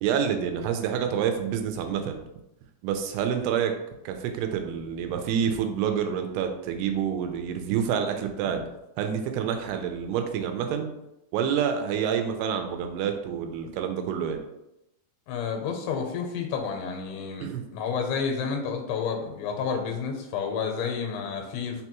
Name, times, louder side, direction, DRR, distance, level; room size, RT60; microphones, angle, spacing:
voice 1, 0.0-2.2 2.8-3.7 4.1-8.6 9.0-10.9 11.3-14.4 17.4-17.6, right 8 dB, 85° right, 6 dB, 2.5 m, -28 dB
voice 2, 15.3-21.8, left 6 dB, 85° left, 3 dB, 2.7 m, -30 dB
5.9 x 2.2 x 2.9 m, 0.87 s
omnidirectional pair, 4.5 m